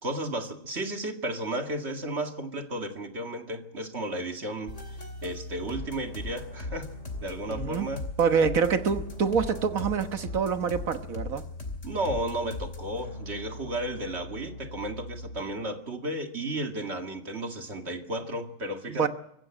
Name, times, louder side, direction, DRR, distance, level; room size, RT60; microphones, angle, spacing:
voice 1, 0.0-4.8 5.2-6.9 7.2-8.0 11.8-19.1, right 1 dB, 50° right, 5 dB, 2.4 m, -33 dB
sound 1, 4.7-15.4, left 2 dB, 60° left, 3.2 m, -39 dB
voice 2, 7.5-7.9 8.2-11.4 18.9-19.1, right 6 dB, 80° right, 9 dB, 1.7 m, -26 dB
24.5 x 15.5 x 7.6 m, 0.75 s
omnidirectional pair, 1.4 m